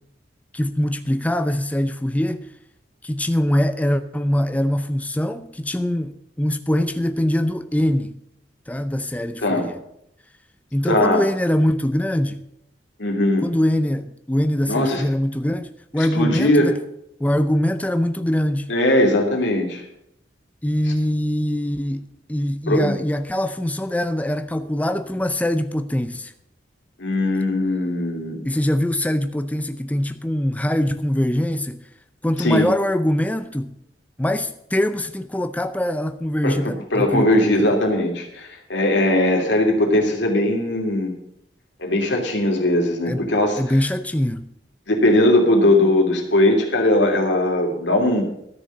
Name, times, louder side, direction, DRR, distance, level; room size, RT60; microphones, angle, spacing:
voice 1, 0.5-2.5 3.0-8.1 8.7-9.8 10.7-12.4 13.4-16.8 17.2-18.7 20.6-26.3 28.4-31.8 32.2-33.7 34.2-37.5 43.1-43.3 43.6-44.5, left 1 dB, 10° left, 0.5 m, -23 dB
voice 2, 10.9-11.2 13.0-13.4 14.7-15.0 16.0-16.7 18.7-19.8 22.7-23.0 27.0-28.5 32.4-32.7 36.4-41.1 41.8-43.6 44.9-48.2, left 1 dB, 85° left, 3.0 m, -19 dB
13.0 x 6.8 x 7.8 m
head